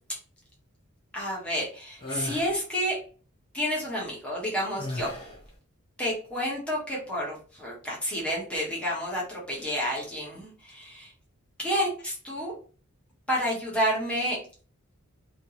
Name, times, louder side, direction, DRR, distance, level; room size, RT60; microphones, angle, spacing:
voice 1, 1.1-2.9 3.5-5.1 6.0-11.1 11.6-12.5 13.3-14.4, equal, 5° left, -5 dB, 1.5 m, -30 dB
sound 1, 2.0-2.5 4.8-5.5, left 1 dB, 25° left, 1.6 m, -35 dB
3.6 x 2.9 x 2.9 m, 0.39 s
head